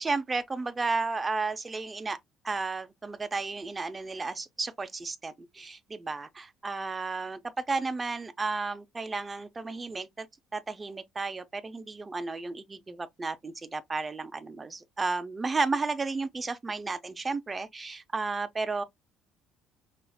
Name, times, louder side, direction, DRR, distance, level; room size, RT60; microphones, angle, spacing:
voice 1, 0.0-2.2 2.4-7.4 7.7-10.3 10.5-18.8, right 3 dB, 20° right, 0.5 m, -33 dB
5.5 x 2.4 x 2.2 m
cardioid pair, 130°, 0 cm